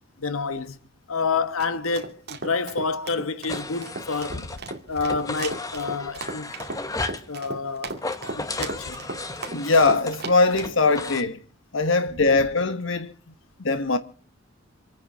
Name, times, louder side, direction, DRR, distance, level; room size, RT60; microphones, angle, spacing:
voice 1, 0.2-0.8 1.1-4.6 4.9-6.5 7.3-8.0 8.3-9.1, left 4 dB, 90° left, 1.3 m, -28 dB
sound 1, 1.3-10.8, right 3 dB, 50° right, 2.6 m, -36 dB
sound 2, 3.5-4.7 5.0-7.3 7.9-11.2, left 3 dB, 15° left, 1.0 m, -34 dB
voice 2, 9.5-11.4 11.7-13.1 13.6-14.0, left 3 dB, 65° left, 1.2 m, -21 dB
26.5 x 9.6 x 4.7 m
head